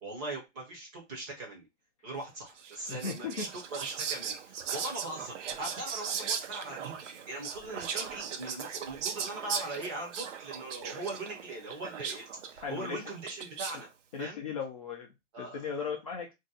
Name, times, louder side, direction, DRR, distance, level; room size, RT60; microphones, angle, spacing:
voice 1, 0.0-1.7 2.0-13.9 14.2-14.4 15.3-15.6, right 2 dB, 15° right, 0 dB, 0.6 m, -40 dB
Whispering, 2.6-13.9, right 7 dB, 90° right, 0.7 m, -38 dB
voice 2, 2.9-3.5 12.6-13.0 14.1-15.1 15.4-16.3, left 6 dB, 30° left, 1 dB, 0.4 m, -36 dB
2.7 x 2.1 x 3.8 m, 0.21 s
hypercardioid pair, 170°, 35 cm